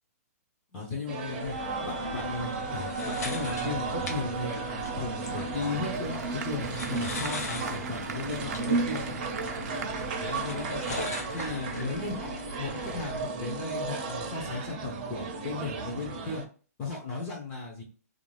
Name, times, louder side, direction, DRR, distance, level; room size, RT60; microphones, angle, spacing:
voice 1, 0.7-9.1 10.2-16.4 16.8-17.8, left 3 dB, 15° left, -2 dB, 0.5 m, -36 dB
sound 1, 1.1-16.5, right 4 dB, 35° right, 0.5 m, -34 dB
sound 2, 1.4-13.2, left 2 dB, 80° left, 0.8 m, -40 dB
Applause / Crowd, 5.3-11.9, right 6 dB, 90° right, 0.4 m, -43 dB
2.5 x 2.3 x 3.2 m, 0.39 s
hypercardioid pair, 175°, 9 cm